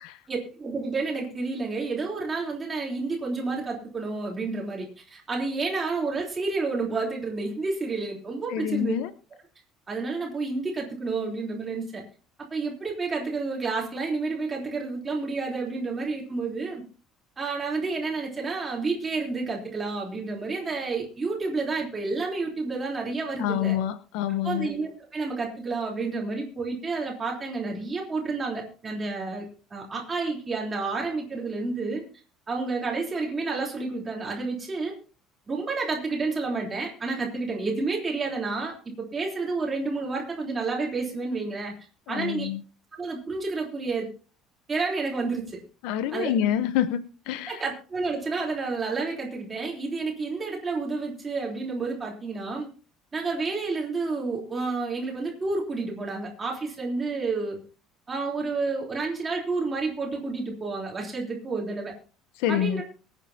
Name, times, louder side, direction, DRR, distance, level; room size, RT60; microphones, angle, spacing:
voice 1, 0.3-8.9 9.9-12.0 12.5-16.8 17.4-23.8 24.4-32.0 32.5-34.9 35.5-41.7 42.1-42.5 43.0-44.1 44.7-45.6 46.1-46.3 47.5-52.7 53.1-57.6 58.1-61.9 62.5-62.8, right 3 dB, 15° right, -1 dB, 3.5 m, -30 dB
voice 2, 8.5-9.1 23.4-24.7 42.1-42.6 45.8-47.6 62.4-62.8, left 10 dB, 75° left, 12 dB, 0.9 m, -27 dB
23.5 x 9.2 x 2.8 m, 0.37 s
cardioid pair, 175°, 0 cm